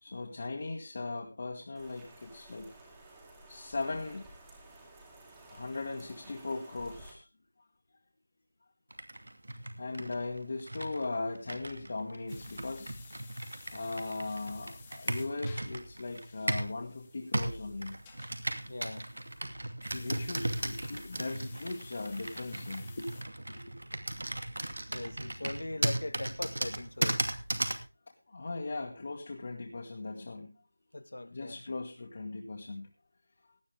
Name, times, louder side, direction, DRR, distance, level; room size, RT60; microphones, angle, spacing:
voice 1, 0.0-2.8 3.5-4.3 5.5-7.2 9.8-13.0 13.7-18.0 19.9-23.1 23.5-23.8 28.3-30.6 31.3-32.9, left 3 dB, 40° left, 1.9 m, -38 dB
Rain, 1.8-7.1, right 2 dB, 5° right, 2.0 m, -54 dB
Computer keyboard, 8.9-16.8 17.3-27.9, right 1 dB, 85° right, 2.5 m, -36 dB
sound 1, 12.3-19.4 19.8-23.2, left 6 dB, 10° left, 1.5 m, -56 dB
voice 2, 18.7-19.1 24.9-27.2 30.9-31.6, left 2 dB, 75° left, 1.5 m, -40 dB
18.0 x 10.5 x 3.5 m
figure-of-eight pair, 175°, 0 cm